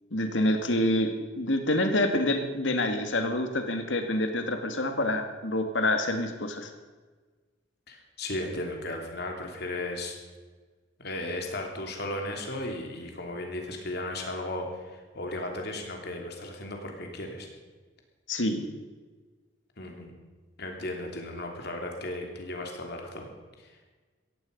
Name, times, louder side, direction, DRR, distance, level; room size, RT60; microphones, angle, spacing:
voice 1, 0.1-6.7 18.3-18.7, left 1 dB, 70° left, 6 dB, 2.1 m, -27 dB
voice 2, 7.9-10.2 11.0-17.5 19.8-20.1 20.6-23.3 23.6-23.7, left 1 dB, 55° left, 2 dB, 3.1 m, -35 dB
17.0 x 15.0 x 5.4 m, 1.4 s
head